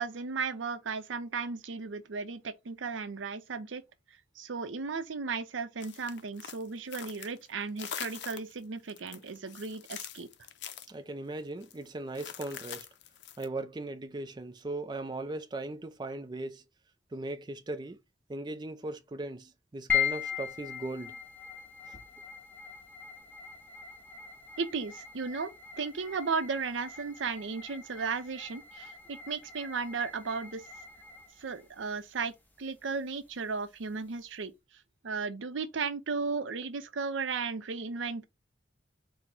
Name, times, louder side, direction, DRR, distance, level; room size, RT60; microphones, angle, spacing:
voice 1, 0.0-3.8 4.4-10.3 24.6-25.5 25.8-30.6 31.4-34.5 35.0-38.3, right 4 dB, 90° right, 0.6 m, -35 dB
sound 1, 5.8-7.5 7.8-8.6 8.9-10.9 11.6-11.8 12.1-13.5, left 9 dB, 65° left, 0.5 m, -43 dB
voice 2, 10.9-12.9 13.4-16.6 17.1-18.0 18.3-21.2 21.9-22.0, right 2 dB, 25° right, 0.4 m, -38 dB
sound 2, 19.9-34.4, left 8 dB, 10° left, 0.7 m, -40 dB
4.4 x 2.1 x 3.9 m
head